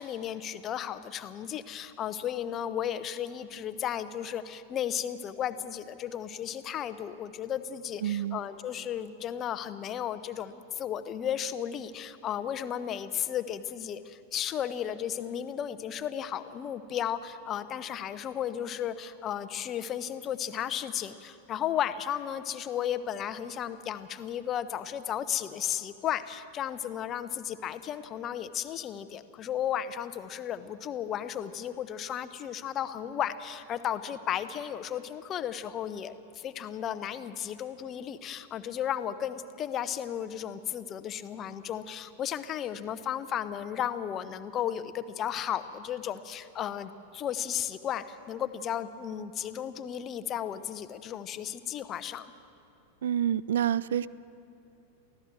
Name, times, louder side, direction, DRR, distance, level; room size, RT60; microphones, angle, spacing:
voice 1, 0.0-52.3, left 10 dB, 30° left, 12 dB, 0.9 m, -34 dB
voice 2, 8.0-8.4 53.0-54.1, right 10 dB, 60° right, 20 dB, 0.4 m, -28 dB
23.5 x 15.5 x 7.7 m, 2.7 s
figure-of-eight pair, 90°, 0 cm